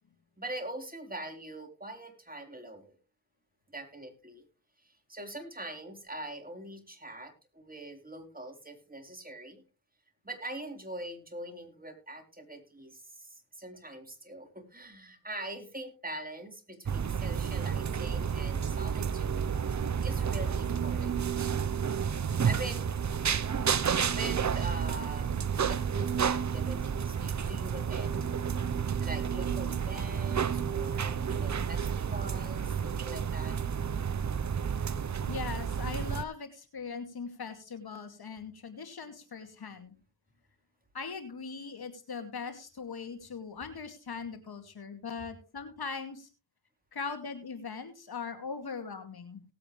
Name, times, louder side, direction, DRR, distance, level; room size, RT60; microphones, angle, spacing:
voice 1, 0.4-3.0 3.7-4.4 4.8-9.6 10.2-19.5 20.0-21.5 22.4-22.9 24.1-25.3 25.7-28.3 29.0-33.6, right 1 dB, 20° right, 4 dB, 4.2 m, -43 dB
sound 1, 16.9-36.2, right 7 dB, 40° right, 0.9 m, -31 dB
voice 2, 35.3-39.9 40.9-46.3 46.9-49.4, left 5 dB, 60° left, 7 dB, 2.4 m, -40 dB
18.5 x 8.5 x 3.2 m, 0.31 s
supercardioid pair, 45°, 43 cm